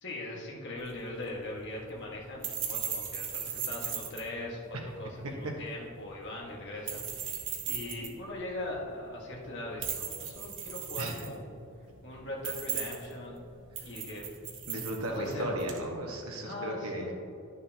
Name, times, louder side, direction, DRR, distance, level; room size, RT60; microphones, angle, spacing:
voice 1, 0.0-7.3 7.6-11.5 12.0-13.4 13.8-14.3 15.0-15.6 16.4-17.1, left 1 dB, 55° left, -3 dB, 1.6 m, -40 dB
sound 1, 0.8-15.9, right 8 dB, 55° right, 1.0 m, -39 dB
voice 2, 14.7-17.1, right 1 dB, 75° right, 0 dB, 1.4 m, -35 dB
11.0 x 6.6 x 2.9 m, 2.6 s
head